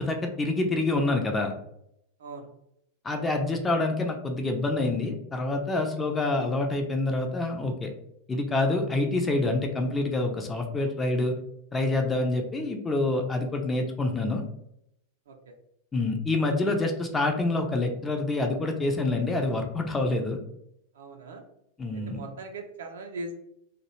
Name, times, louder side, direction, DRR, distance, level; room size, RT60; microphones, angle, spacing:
voice 1, 0.0-1.5 3.0-7.9 8.3-11.4 11.7-14.4 15.9-20.4 21.8-22.2, left 2 dB, 15° left, 3 dB, 0.4 m, -27 dB
voice 2, 21.0-21.4 21.9-23.3, right 2 dB, 60° right, 4 dB, 0.4 m, -39 dB
2.3 x 2.0 x 2.9 m, 0.77 s
figure-of-eight pair, 90°, 0 cm